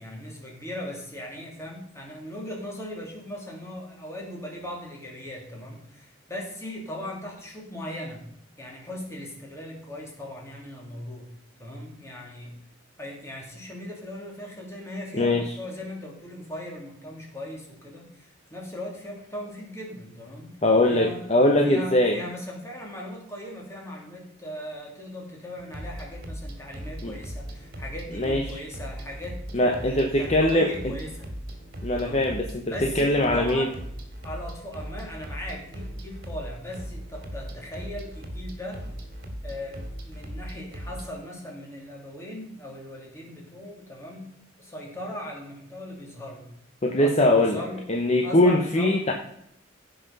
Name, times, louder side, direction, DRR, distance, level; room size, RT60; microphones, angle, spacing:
voice 1, 0.0-8.2 8.6-11.3 11.6-12.5 13.0-20.5 20.9-21.3 21.6-31.3 31.9-32.3 32.7-33.7 34.2-38.8 39.4-44.3 44.6-46.5 47.0-47.8 48.2-49.1, left 1 dB, 15° left, -1 dB, 2.9 m, -38 dB
voice 2, 15.1-15.4 20.6-22.2 27.0-27.1 28.1-28.6 29.5-30.7 31.8-33.7 46.8-47.6 47.9-49.1, left 1 dB, 35° left, 3 dB, 0.9 m, -21 dB
sound 1, 25.6-41.1, equal, 50° right, 2.1 m, -38 dB
15.5 x 5.6 x 5.4 m, 0.75 s
head